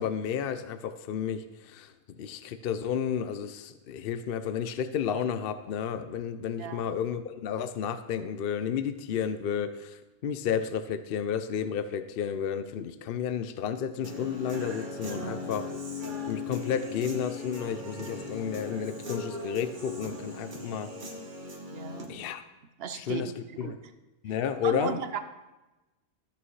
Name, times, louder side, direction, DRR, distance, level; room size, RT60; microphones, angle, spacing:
voice 1, 0.0-1.9 2.2-15.7 16.3-20.9 22.1-22.4 22.9-23.3 23.6-23.8 24.2-25.0, left 8 dB, 65° left, 11 dB, 0.6 m, -32 dB
Human voice / Guitar, 14.0-22.1, left 3 dB, 35° right, 1.3 m, -38 dB
voice 2, 15.1-15.7 21.7-22.2 22.8-23.8 24.6-25.2, right 7 dB, 55° right, 9 dB, 0.7 m, -37 dB
13.5 x 8.4 x 3.2 m, 1.0 s
omnidirectional pair, 1.5 m